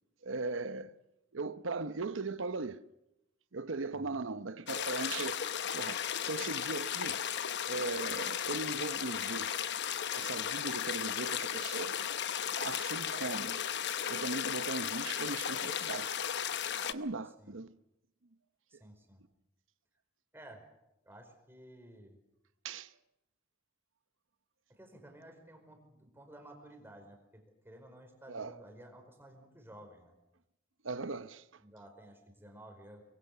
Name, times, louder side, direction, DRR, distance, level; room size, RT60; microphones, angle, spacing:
voice 1, 0.2-0.9 1.3-2.9 3.5-7.2 7.7-9.6 10.1-12.0 12.6-13.6 14.1-16.2 16.8-17.7 18.7-18.8 22.6-22.9 28.3-28.6 30.8-31.4, right 3 dB, 70° right, 0.9 m, -39 dB
sound 1, 4.7-16.9, left 9 dB, 60° left, 1.0 m, -35 dB
voice 2, 18.7-19.2 20.3-20.6 21.0-22.2 24.7-30.1 31.6-33.0, right 1 dB, 10° right, 5.0 m, -54 dB
24.0 x 22.5 x 6.8 m
head